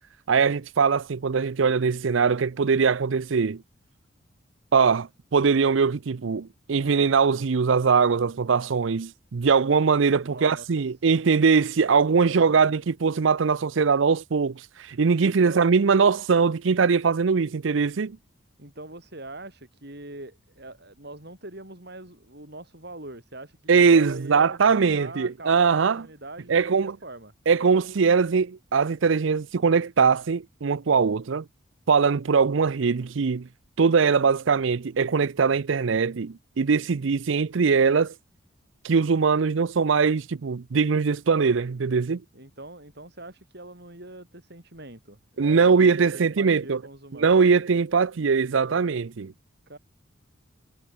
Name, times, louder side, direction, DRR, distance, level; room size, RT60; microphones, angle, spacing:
voice 1, 0.3-3.6 4.7-18.2 23.7-26.0 26.5-27.0 27.5-31.4 31.9-33.5 33.8-38.1 38.8-42.2 45.4-46.8 47.2-49.3, right 5 dB, 70° right, 0.5 m, -21 dB
voice 2, 10.2-10.7 12.2-12.7 15.2-15.8 18.6-27.3 42.3-47.4 49.7-49.8, right 2 dB, 55° right, 7.7 m, -42 dB
head